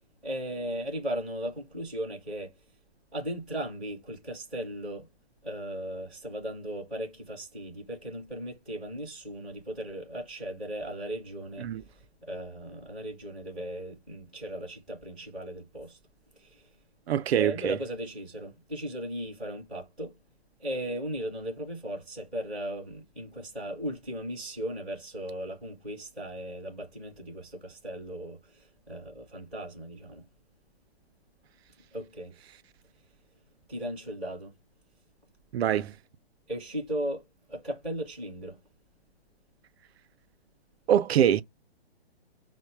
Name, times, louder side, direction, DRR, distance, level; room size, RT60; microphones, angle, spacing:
voice 1, 0.2-2.5 3.1-5.1 5.4-16.0 16.4-16.6 17.3-20.2 20.6-30.2 31.9-32.3 33.7-34.5 36.5-38.6, right 1 dB, ahead, 0.4 m, -37 dB
voice 2, 17.1-17.8 35.5-35.9 40.9-41.4, right 10 dB, 75° right, 0.5 m, -24 dB
4.5 x 2.1 x 4.4 m
hypercardioid pair, 165°, 32 cm